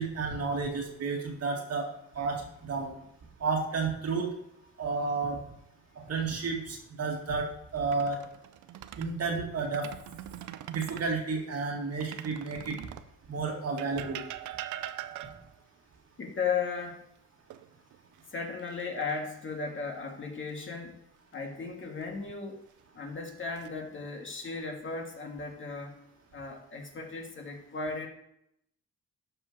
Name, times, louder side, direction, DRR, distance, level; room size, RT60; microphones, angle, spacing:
voice 1, 0.0-1.9 2.2-2.9 3.4-4.3 4.8-5.4 6.0-8.2 9.0-9.9 10.7-12.9 13.3-14.2, right 4 dB, 55° right, 1 dB, 2.0 m, -31 dB
sound 1, 7.8-9.1 9.6-11.1 12.0-13.1 13.8-15.6 17.5-18.2 18.6-18.8 21.7-22.3 23.0-23.7, right 12 dB, 75° right, 0.6 m, -42 dB
voice 2, 16.2-17.1 18.3-21.0 21.3-22.6 22.9-26.0 26.3-28.1, left 5 dB, 40° left, 2 dB, 1.9 m, -36 dB
12.0 x 4.9 x 4.2 m, 0.77 s
cardioid pair, 90°, 30 cm